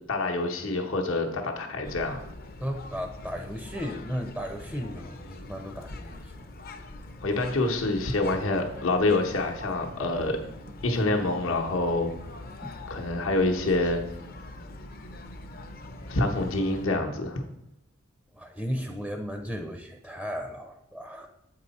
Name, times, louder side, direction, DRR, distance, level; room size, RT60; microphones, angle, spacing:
voice 1, 0.1-2.2 7.2-10.4 10.8-12.1 12.9-14.0 16.1-17.4, left 2 dB, 75° left, 1 dB, 0.9 m, -26 dB
sound 1, 1.8-16.9, left 2 dB, 45° left, 0.6 m, -43 dB
voice 2, 2.6-6.5 12.6-12.8 18.4-21.3, equal, ahead, 5 dB, 0.5 m, -35 dB
7.7 x 4.7 x 4.1 m, 0.86 s
head